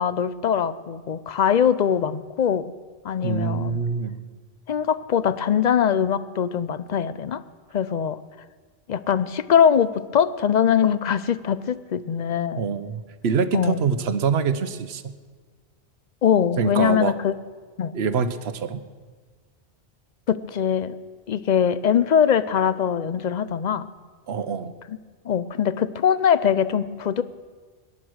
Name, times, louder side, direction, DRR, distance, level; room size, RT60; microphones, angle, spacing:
voice 1, 0.0-2.7 3.0-3.8 4.7-7.4 7.7-8.2 8.9-12.6 13.5-13.8 16.2-17.3 17.8-17.9 20.3-21.0 21.3-23.8 24.9-25.0 25.3-27.2, left 8 dB, 50° left, 15 dB, 0.6 m, -22 dB
voice 2, 3.2-4.3 12.6-15.1 16.6-17.1 17.9-18.8 24.3-24.7, right 6 dB, 75° right, 12 dB, 1.1 m, -25 dB
18.0 x 11.0 x 6.3 m, 1.5 s
omnidirectional pair, 1.1 m